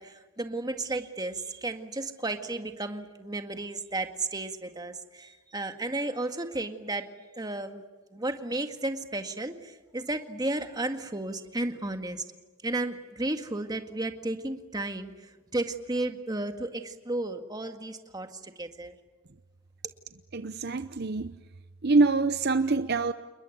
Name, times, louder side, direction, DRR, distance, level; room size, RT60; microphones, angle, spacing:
voice 1, 0.0-7.1 7.4-7.8 8.1-12.3 12.6-19.0, right 2 dB, 20° right, 6 dB, 1.9 m, -33 dB
voice 2, 20.3-21.4 21.8-23.1, right 3 dB, 50° right, 11 dB, 0.8 m, -25 dB
29.0 x 21.5 x 9.2 m, 1.2 s
head